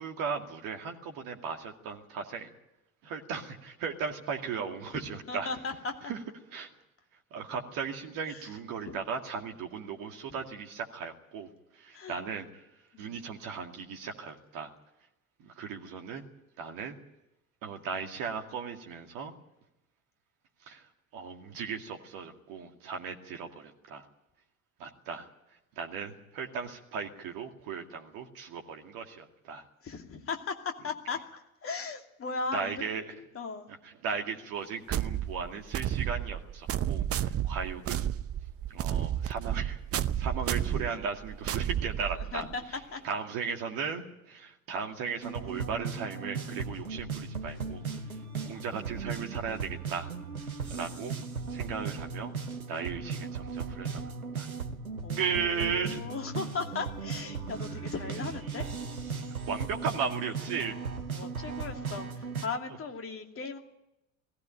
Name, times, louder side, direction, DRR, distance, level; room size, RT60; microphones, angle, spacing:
voice 1, 0.0-2.5 3.0-5.5 6.1-6.2 6.5-6.7 7.3-11.5 11.7-12.6 13.0-14.7 15.4-16.2 16.6-17.0 17.6-19.3 20.7-20.8 21.1-24.0 24.8-25.3 25.8-29.6 32.5-33.1 33.8-38.1 38.7-42.4 43.0-50.1 50.7-51.2 51.5-52.3 52.7-54.0 54.3-54.5 55.2-56.0 59.5-60.8, right 6 dB, 50° right, 2 dB, 2.4 m, -36 dB
voice 2, 4.9-6.0 8.3-8.5 8.9-9.0 10.3-10.4 11.9-12.1 12.9-13.3 29.8-32.8 33.1-33.7 40.3-40.4 40.7-41.0 42.1-42.6 42.9-43.0 55.0-58.7 61.1-63.6, left 4 dB, 30° left, 4 dB, 2.7 m, -37 dB
sound 1, 34.9-42.5, right 10 dB, 35° right, 0.8 m, -31 dB
sound 2, 45.2-62.5, right 5 dB, 85° right, 1.1 m, -37 dB
20.0 x 15.5 x 9.1 m, 0.90 s
figure-of-eight pair, 65°, 42 cm